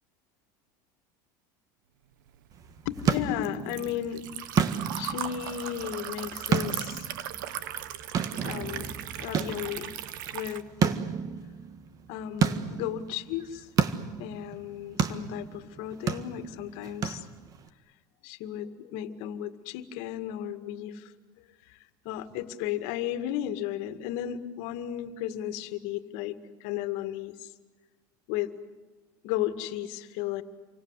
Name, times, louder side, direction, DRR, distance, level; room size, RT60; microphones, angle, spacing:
Liquid, 2.3-10.6, right 11 dB, 90° right, 1.4 m, -38 dB
sound 1, 2.5-17.7, right 7 dB, 35° right, 1.6 m, -32 dB
voice 1, 2.9-4.3 4.9-7.1 8.4-10.0 10.3-10.7 12.1-13.7 14.2-17.3 18.2-21.1 21.7-21.8 22.0-26.4 26.6-27.5 28.3-28.5 29.2-30.4, left 11 dB, 65° left, 9 dB, 2.1 m, -34 dB
29.0 x 24.5 x 8.3 m, 1.3 s
supercardioid pair, 130°, 10 cm